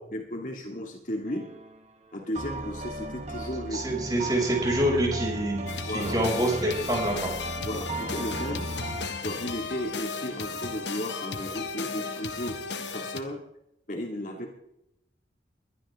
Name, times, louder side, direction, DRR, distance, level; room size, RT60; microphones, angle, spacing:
voice 1, 0.1-1.5 2.1-3.8 5.8-6.2 7.6-8.7 9.2-13.4 13.9-14.5, left 1 dB, 45° left, 1 dB, 2.5 m, -34 dB
sound 1, 1.3-1.8 2.3-9.1, right 1 dB, 35° right, 1.7 m, -36 dB
voice 2, 3.7-7.3, right 1 dB, 20° right, -2 dB, 6.8 m, -26 dB
sound 2, 5.7-13.2, left 5 dB, 80° left, 1.4 m, -35 dB
23.0 x 12.0 x 3.8 m, 0.79 s
head